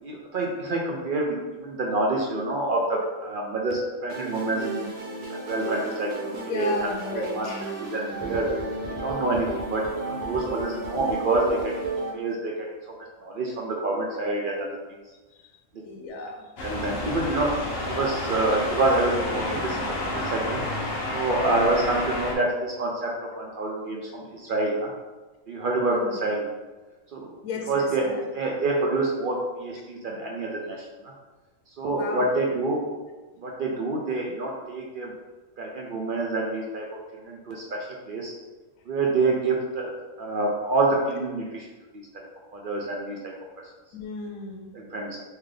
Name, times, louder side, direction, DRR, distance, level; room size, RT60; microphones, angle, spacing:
voice 1, 0.0-4.9 5.4-7.5 7.8-8.5 9.0-11.9 12.1-12.5 13.2-14.7 16.6-17.6 17.8-19.8 20.1-20.6 21.1-23.1 23.4-24.9 25.5-26.5 27.1-27.3 27.7-28.1 28.3-30.9 31.8-32.8 33.4-35.1 35.6-36.9 37.2-38.3 38.9-39.9 40.2-41.7 41.9-42.2 42.5-43.3 44.7-45.2, right 2 dB, 70° right, -1 dB, 0.5 m, -27 dB
sound 1, 4.1-12.1, right 3 dB, 45° right, 1.1 m, -33 dB
voice 2, 6.3-7.6 15.4-15.5 15.8-16.5 25.9-26.2 27.4-28.2 31.9-32.2 43.9-44.8, left 4 dB, 80° left, 2 dB, 1.0 m, -34 dB
sound 2, 16.6-22.3, left 1 dB, 55° left, 0.8 m, -30 dB
3.7 x 2.8 x 3.3 m, 1.2 s
omnidirectional pair, 1.4 m